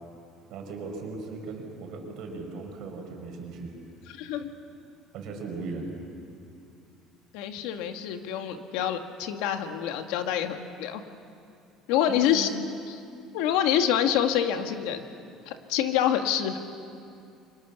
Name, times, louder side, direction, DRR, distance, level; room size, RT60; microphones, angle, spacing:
voice 1, 0.5-3.7 5.1-5.9 12.1-12.5, right 4 dB, 50° right, 2 dB, 5.0 m, -38 dB
voice 2, 4.1-4.5 7.3-11.0 11.9-12.5 12.9-13.0 13.3-15.1 15.5-16.6, left 10 dB, 80° left, 6 dB, 1.8 m, -26 dB
30.0 x 25.0 x 7.1 m, 2.5 s
cardioid pair, 180°, 0 cm